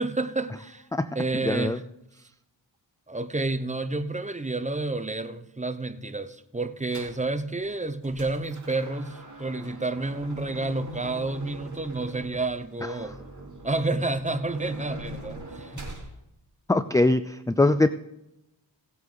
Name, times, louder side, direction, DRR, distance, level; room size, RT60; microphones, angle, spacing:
voice 1, 0.0-0.8 1.1-1.8 3.1-13.2 13.6-15.7, right 2 dB, 15° right, 0.8 m, -30 dB
voice 2, 1.4-1.8 16.7-17.9, left 2 dB, 10° left, 0.3 m, -22 dB
sound 1, 6.9-7.2 7.7-16.1, right 1 dB, 40° right, 3.7 m, -41 dB
17.5 x 8.1 x 3.9 m
cardioid pair, 50°, 45 cm